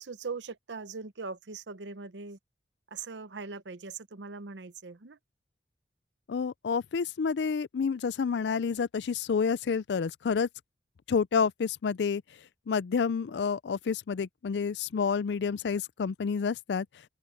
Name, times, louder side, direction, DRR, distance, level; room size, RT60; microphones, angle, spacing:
voice 1, 0.0-2.4 2.9-5.2, right 4 dB, 80° right, 0.8 m, -40 dB
voice 2, 6.3-10.5 11.1-12.2 12.7-16.9, left 6 dB, 70° left, 0.4 m, -29 dB
open air
head